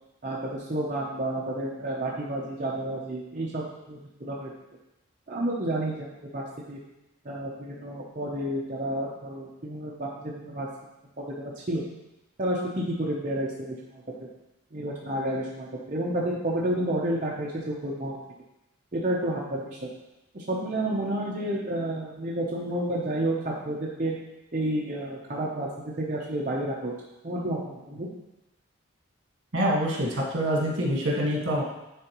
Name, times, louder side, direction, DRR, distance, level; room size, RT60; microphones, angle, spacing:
voice 1, 0.2-4.5 5.3-6.8 7.2-10.7 11.2-11.8 12.4-14.0 14.7-18.2 18.9-19.9 20.3-24.1 24.5-26.9 27.2-28.1, right 1 dB, 40° right, -5 dB, 0.8 m, -30 dB
voice 2, 29.5-31.6, equal, 70° right, -2 dB, 1.6 m, -25 dB
10.0 x 3.9 x 3.0 m, 0.94 s
head